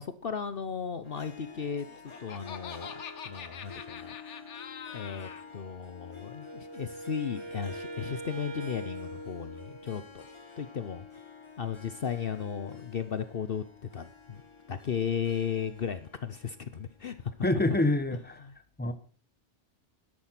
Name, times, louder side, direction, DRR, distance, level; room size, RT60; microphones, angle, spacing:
voice 1, 0.0-4.2 4.9-10.2 10.6-11.1 11.6-13.6 13.9-14.4 14.7-17.3 18.4-18.5, left 7 dB, 55° left, 12 dB, 1.0 m, -35 dB
Harp, 1.0-17.5, left 5 dB, 25° left, 1.9 m, -49 dB
Laughter, 1.7-5.4, left 8 dB, 75° left, 1.3 m, -44 dB
Wind instrument woodwind instrument, 6.4-10.3, right 3 dB, 75° right, 1.4 m, -43 dB
voice 2, 17.4-18.4 18.8-18.9, left 2 dB, 10° left, 11 dB, 1.3 m, -26 dB
12.5 x 11.0 x 5.9 m, 0.40 s
omnidirectional pair, 1.2 m